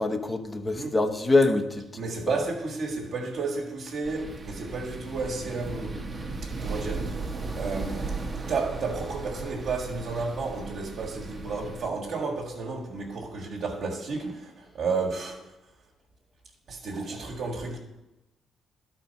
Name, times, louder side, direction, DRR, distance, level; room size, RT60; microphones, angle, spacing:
voice 1, 0.0-1.8 2.3-2.4, left 2 dB, 20° left, 0.8 m, -24 dB
voice 2, 1.9-6.0 6.4-8.0 8.4-15.5 16.7-17.8, right 4 dB, 70° right, 1.5 m, -32 dB
sound 1, 4.0-11.9, right 3 dB, 30° right, 1.0 m, -36 dB
11.5 x 4.5 x 5.2 m
cardioid pair, 90°, 0 cm